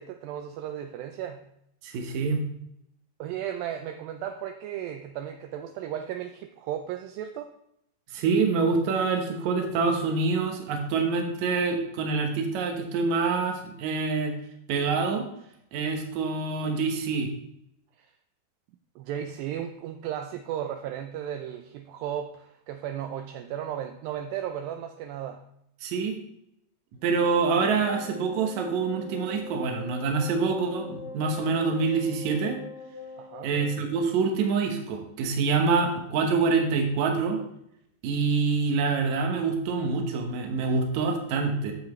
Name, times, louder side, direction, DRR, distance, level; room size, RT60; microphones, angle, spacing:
voice 1, 0.0-1.5 3.2-7.6 18.0-18.1 19.0-25.5 33.2-33.5, right 10 dB, 80° right, 6 dB, 2.2 m, -35 dB
voice 2, 1.8-2.5 8.1-14.3 14.7-15.2 15.7-17.3 25.8-26.2 27.0-32.6 33.4-37.4 38.0-41.7, right 4 dB, 60° right, 3 dB, 2.1 m, -26 dB
Wind instrument woodwind instrument, 27.0-34.0, left 5 dB, 75° left, 1.6 m, -43 dB
10.5 x 7.3 x 3.1 m, 0.77 s
omnidirectional pair, 4.4 m